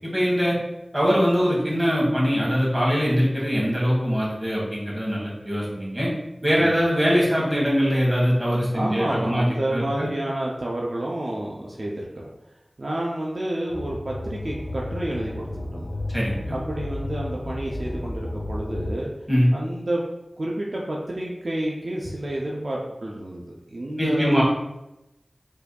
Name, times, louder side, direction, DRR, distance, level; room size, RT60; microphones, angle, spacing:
voice 1, 0.1-0.6 0.9-6.1 6.4-9.4 9.7-10.1 16.1-16.6 19.3-19.5 24.0-24.4, equal, 15° right, -6 dB, 1.4 m, -22 dB
voice 2, 8.7-12.3 12.8-15.9 16.5-19.1 19.5-20.0 20.4-24.4, right 1 dB, 60° right, -3 dB, 0.5 m, -29 dB
sound 1, 13.7-18.9, left 1 dB, 60° left, 0.4 m, -32 dB
4.6 x 2.7 x 2.3 m, 0.94 s
wide cardioid pair, 65°, 0 cm